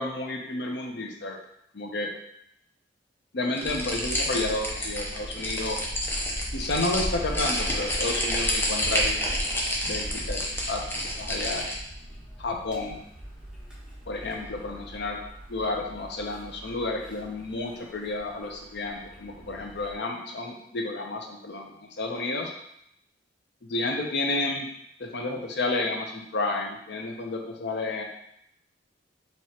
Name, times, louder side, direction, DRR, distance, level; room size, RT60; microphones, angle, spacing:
voice 1, 0.0-1.4 1.7-2.1 3.3-5.8 6.5-9.2 9.8-10.4 10.7-10.8 11.2-11.6 12.4-13.0 14.1-15.2 15.5-22.5 23.7-24.7 25.0-28.0, left 2 dB, 65° left, 2 dB, 0.6 m, -31 dB
sound 1, 3.6-11.8, equal, 10° left, 0.6 m, -29 dB
sound 2, 3.6-19.9, equal, 5° right, 1.1 m, -39 dB
4.6 x 3.0 x 2.8 m, 0.75 s
head